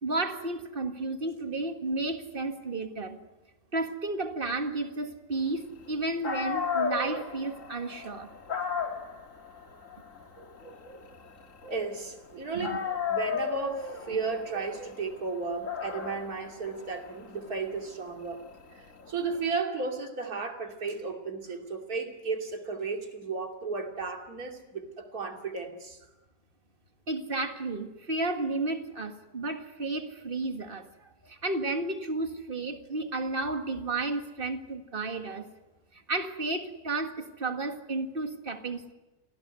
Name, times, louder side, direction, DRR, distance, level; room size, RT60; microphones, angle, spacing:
voice 1, 0.0-3.2 3.7-8.3 12.5-12.8 27.1-35.5 35.9-38.9, right 2 dB, 35° right, 6 dB, 2.1 m, -32 dB
Dog, 5.9-6.0 6.2-12.3 12.6-19.4, left 6 dB, 50° left, 2.3 m, -35 dB
voice 2, 11.7-18.4 18.7-26.0, right 4 dB, 60° right, 3 dB, 3.2 m, -34 dB
27.5 x 18.0 x 9.6 m, 1.1 s
omnidirectional pair, 1.7 m